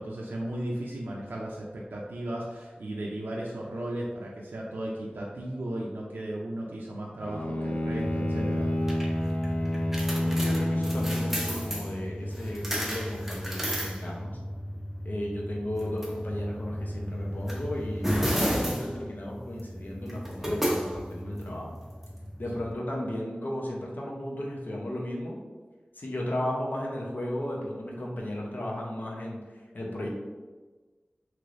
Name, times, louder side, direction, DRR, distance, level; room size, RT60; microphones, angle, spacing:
voice 1, 0.0-8.7, right 1 dB, 85° right, -4 dB, 0.4 m, -35 dB
Bowed string instrument, 7.2-12.0, left 1 dB, 40° left, 0.4 m, -30 dB
sound 1, 8.0-22.7, equal, 5° right, 0.7 m, -33 dB
voice 2, 10.3-14.4 15.0-21.8 22.4-25.3 25.9-29.4 29.7-30.1, left 1 dB, 60° left, -2 dB, 0.7 m, -35 dB
3.1 x 3.0 x 2.5 m, 1.3 s
wide cardioid pair, 50°, 3 cm